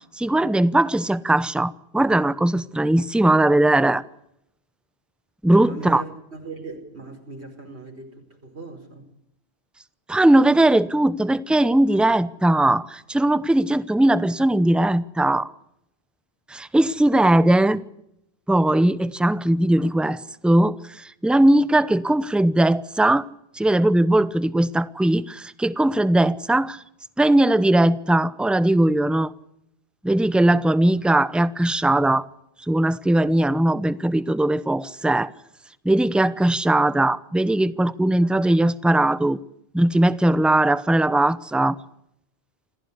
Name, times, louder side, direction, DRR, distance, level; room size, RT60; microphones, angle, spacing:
voice 1, 0.2-4.0 5.4-6.0 10.1-15.5 16.5-17.8 18.5-23.2 23.5-26.8 27.2-29.3 30.0-32.2 32.7-35.3 35.8-39.4 39.7-41.8, right 1 dB, ahead, 0.7 m, -19 dB
voice 2, 5.6-9.1 38.2-38.3, right 3 dB, 75° right, 5.2 m, -38 dB
27.0 x 15.0 x 8.4 m
omnidirectional pair, 1.1 m